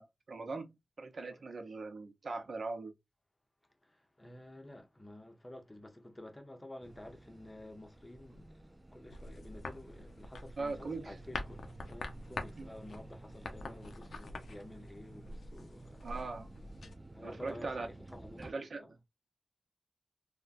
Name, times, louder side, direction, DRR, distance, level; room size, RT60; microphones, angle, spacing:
voice 1, 0.0-2.9 10.6-11.1 12.6-12.7 16.0-16.5 17.2-17.9 18.4-18.9, right 3 dB, 65° right, 0.8 m, -40 dB
voice 2, 3.8-16.1 17.1-18.9, left 1 dB, 15° left, 0.7 m, -51 dB
sound 1, 6.8-18.5, right 2 dB, 15° right, 0.3 m, -54 dB
sound 2, 9.1-16.9, left 2 dB, 80° left, 0.6 m, -46 dB
3.5 x 2.2 x 2.5 m
wide cardioid pair, 120°, 0 cm